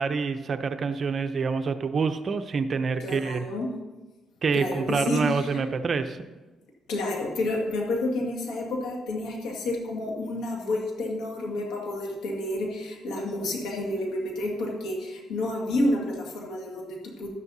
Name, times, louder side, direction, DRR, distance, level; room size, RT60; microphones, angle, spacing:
voice 1, 0.0-3.5 4.4-6.3, right 5 dB, 45° right, 9 dB, 0.7 m, -27 dB
voice 2, 3.0-3.7 4.5-5.6 6.9-17.3, left 1 dB, 90° left, 0 dB, 2.0 m, -30 dB
12.5 x 11.0 x 2.8 m, 1.2 s
cardioid pair, 90°, 0 cm